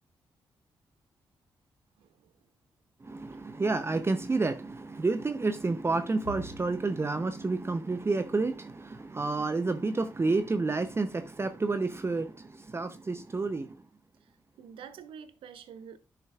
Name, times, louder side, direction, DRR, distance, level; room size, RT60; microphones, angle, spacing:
voice 1, 2.0-2.3 14.2-14.3 14.6-16.0, right 7 dB, 75° right, 0.7 m, -47 dB
voice 2, 3.0-13.8, right 3 dB, 30° right, 0.6 m, -30 dB
Bowed string instrument, 6.2-8.8, left 1 dB, 85° left, 1.3 m, -50 dB
10.5 x 5.7 x 2.3 m
hypercardioid pair, 40°, 9 cm